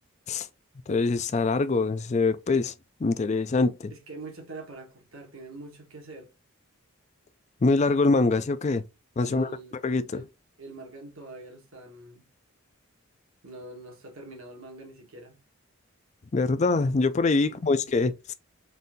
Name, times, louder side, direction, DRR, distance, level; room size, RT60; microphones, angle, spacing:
voice 1, 0.9-2.7 3.0-3.9 7.6-8.8 9.2-9.5 9.8-10.2 16.3-18.3, left 3 dB, 35° left, 0.4 m, -24 dB
voice 2, 3.9-6.3 9.2-9.8 10.1-10.3 10.6-12.2 13.4-15.4 17.4-17.8, right 2 dB, 75° right, 1.5 m, -44 dB
4.1 x 2.7 x 3.6 m
head